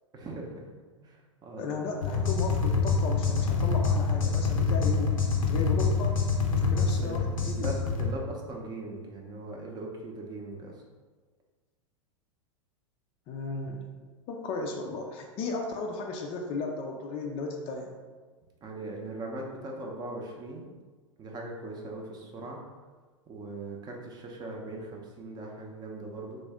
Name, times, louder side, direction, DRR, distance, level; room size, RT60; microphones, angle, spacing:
voice 1, 0.1-0.7 1.0-2.2 4.8-5.0 6.9-10.7 18.6-20.7 21.2-22.6 23.3-26.4, right 2 dB, 25° right, 0 dB, 0.6 m, -40 dB
voice 2, 1.6-6.2 6.6-7.7 13.3-13.9 14.3-18.0, left 3 dB, 35° left, 2 dB, 0.4 m, -35 dB
sound 1, 2.0-8.1, left 4 dB, 80° left, 0.6 m, -26 dB
3.2 x 2.5 x 3.5 m, 1.4 s
hypercardioid pair, 100°, 17 cm